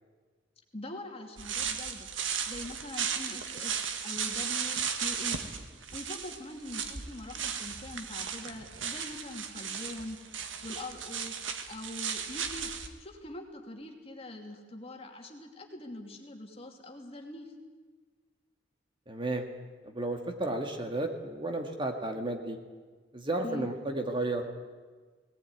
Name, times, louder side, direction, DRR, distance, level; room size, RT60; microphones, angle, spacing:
voice 1, 0.7-2.1 2.5-5.4 5.9-10.2 10.6-11.3 11.7-12.7 13.0-17.5 23.4-23.7, left 1 dB, 30° left, 3 dB, 2.7 m, -43 dB
sound 1, 1.4-12.9, right 7 dB, 80° right, 1.9 m, -35 dB
voice 2, 19.1-19.5 19.8-22.6 23.1-24.5, right 2 dB, 25° right, 4 dB, 1.8 m, -33 dB
19.5 x 18.5 x 9.7 m, 1.4 s
head